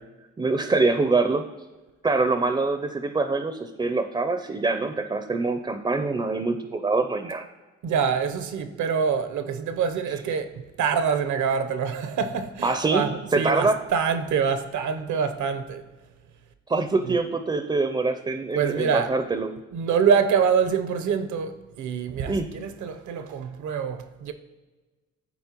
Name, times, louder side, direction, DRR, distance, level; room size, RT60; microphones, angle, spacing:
voice 1, 0.4-1.5 2.0-7.4 12.6-13.0 13.3-13.7 16.7-19.5 22.3-22.5, right 3 dB, 15° right, 0.4 m, -24 dB
voice 2, 7.8-15.9 17.1-17.2 18.5-19.1 19.7-24.3, right 6 dB, 75° right, 0.8 m, -25 dB
12.0 x 4.3 x 2.9 m
cardioid pair, 90°, 30 cm